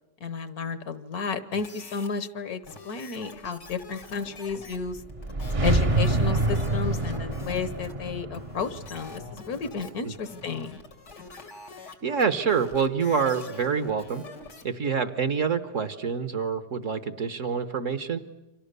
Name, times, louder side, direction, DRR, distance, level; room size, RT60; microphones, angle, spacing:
voice 1, 0.2-5.0 5.6-10.8, left 5 dB, 65° left, 13 dB, 1.5 m, -32 dB
sound 1, 1.5-2.1 2.6-14.6, left 4 dB, 90° left, 3.1 m, -45 dB
sound 2, 4.8-10.0, right 2 dB, 25° right, 0.8 m, -27 dB
voice 2, 12.0-14.2 14.6-18.2, right 6 dB, 50° right, 10 dB, 1.4 m, -26 dB
29.5 x 25.5 x 6.8 m, 0.98 s
omnidirectional pair, 1.8 m